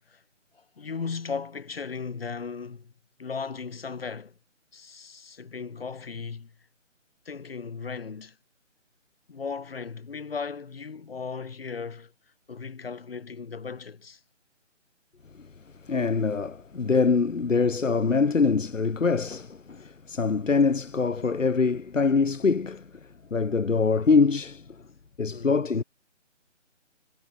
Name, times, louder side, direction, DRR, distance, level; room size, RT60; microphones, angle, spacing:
voice 1, 0.5-2.9 3.2-4.3 4.7-6.5 7.3-8.4 9.3-12.1 12.5-14.2 25.3-25.7, left 5 dB, 50° left, 7.9 m, -36 dB
voice 2, 15.9-22.8 23.3-24.6 25.2-25.8, left 4 dB, 90° left, 1.7 m, -24 dB
figure-of-eight pair, 170°, 37 cm